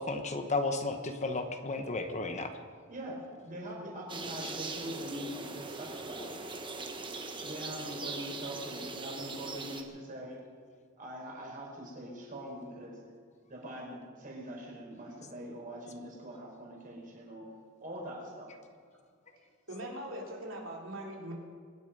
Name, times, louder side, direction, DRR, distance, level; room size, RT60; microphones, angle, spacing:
voice 1, 0.0-2.5, left 3 dB, 35° left, 7 dB, 1.1 m, -33 dB
voice 2, 2.9-6.4 7.4-10.4 11.0-13.0 13.5-17.5 17.8-18.5, equal, 40° right, -2 dB, 5.1 m, -43 dB
sound 1, 4.1-9.8, right 3 dB, 25° right, 1.3 m, -41 dB
voice 3, 19.7-21.3, right 1 dB, 65° right, -1 dB, 3.5 m, -41 dB
24.0 x 10.5 x 5.4 m, 2.1 s
head